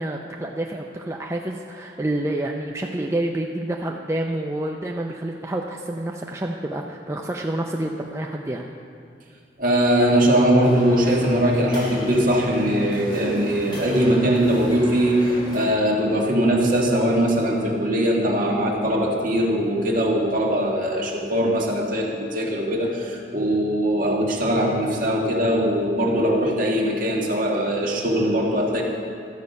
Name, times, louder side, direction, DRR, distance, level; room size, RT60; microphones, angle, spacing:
voice 1, 0.0-8.7, right 1 dB, 15° right, 1 dB, 0.4 m, -28 dB
voice 2, 9.6-28.8, equal, 50° right, -1 dB, 1.7 m, -21 dB
sound 1, 10.6-15.6, right 1 dB, 25° left, 3.2 m, -35 dB
13.0 x 8.2 x 5.3 m, 2.4 s
head